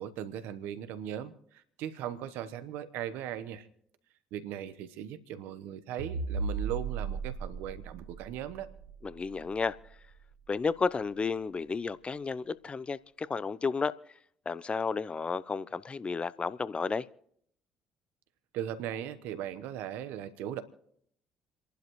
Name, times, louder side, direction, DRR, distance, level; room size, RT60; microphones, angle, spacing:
voice 1, 0.0-3.7 4.3-8.7 18.5-20.6, right 10 dB, 75° right, 1.1 m, -38 dB
sound 1, 6.0-10.5, right 5 dB, 90° right, 1.3 m, -37 dB
voice 2, 9.0-9.8 10.5-13.9 14.5-17.1, left 4 dB, 35° left, 0.7 m, -32 dB
29.0 x 11.5 x 3.1 m
hypercardioid pair, 55°, 3 cm